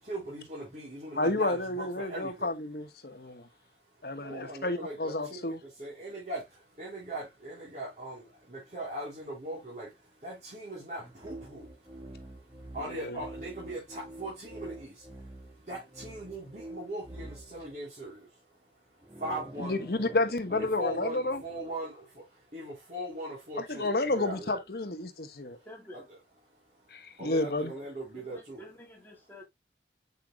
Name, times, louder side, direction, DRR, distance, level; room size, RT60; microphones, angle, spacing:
voice 1, 0.0-2.5 4.1-18.7 19.0-19.8 20.5-24.6 25.5-25.7 25.9-26.2 26.7-28.7, right 1 dB, 45° right, 3.6 m, -41 dB
voice 2, 1.1-3.5 4.0-5.6 12.9-13.2 19.6-21.4 23.6-25.6 26.9-27.7, left 2 dB, 60° left, 1.2 m, -31 dB
sound 1, 11.0-17.8 18.9-21.7, right 1 dB, 20° right, 1.6 m, -47 dB
voice 3, 25.7-26.1 28.1-29.4, left 1 dB, 10° left, 1.8 m, -49 dB
8.0 x 5.7 x 2.2 m
head